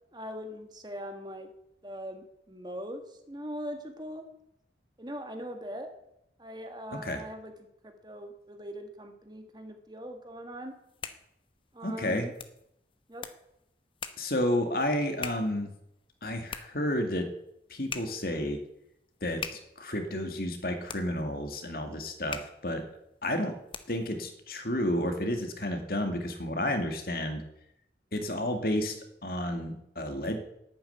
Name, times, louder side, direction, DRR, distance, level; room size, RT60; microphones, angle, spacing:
voice 1, 0.1-1.5 1.8-4.3 5.0-5.9 6.4-7.5 7.8-10.8 11.7-12.3 13.1-13.3, equal, 25° right, 6 dB, 1.7 m, -41 dB
sound 1, 10.7-24.2, left 6 dB, 30° left, 1.0 m, -45 dB
voice 2, 11.8-12.3 14.2-15.7 16.2-17.3 17.7-18.6 19.2-22.8 23.2-23.6 23.9-27.4 28.1-30.4, left 1 dB, 55° left, 6 dB, 2.2 m, -31 dB
11.5 x 10.0 x 9.3 m, 0.79 s
head